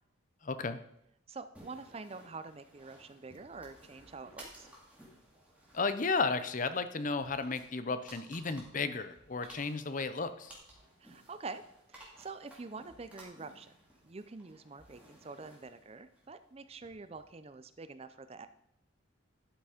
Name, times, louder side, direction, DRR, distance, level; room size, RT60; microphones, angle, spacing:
voice 1, 0.4-0.8 5.7-10.5, left 4 dB, 40° left, 11 dB, 0.6 m, -33 dB
voice 2, 1.3-4.7 11.0-11.6 11.9-13.7 14.0-18.5, right 4 dB, 30° right, 11 dB, 0.5 m, -46 dB
sound 1, 1.5-17.3, right 1 dB, 5° right, 2.5 m, -57 dB
12.0 x 5.9 x 5.0 m, 0.77 s
head